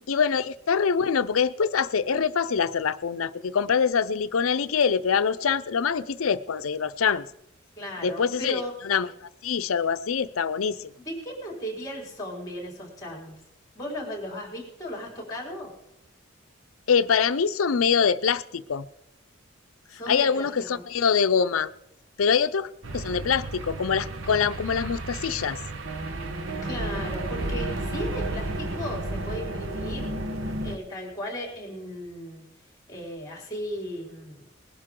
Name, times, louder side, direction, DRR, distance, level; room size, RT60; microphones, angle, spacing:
voice 1, 0.1-7.3 8.0-10.9 16.9-18.9 20.1-21.7 22.2-25.6, left 6 dB, 90° left, 0.6 m, -24 dB
voice 2, 7.8-8.7 11.0-13.3 13.7-15.7 19.9-20.8 26.6-30.1 30.6-32.4 32.9-34.4, equal, 20° left, 4.7 m, -36 dB
sound 1, 22.8-30.8, right 2 dB, 75° right, 1.2 m, -32 dB
20.5 x 11.5 x 3.8 m
head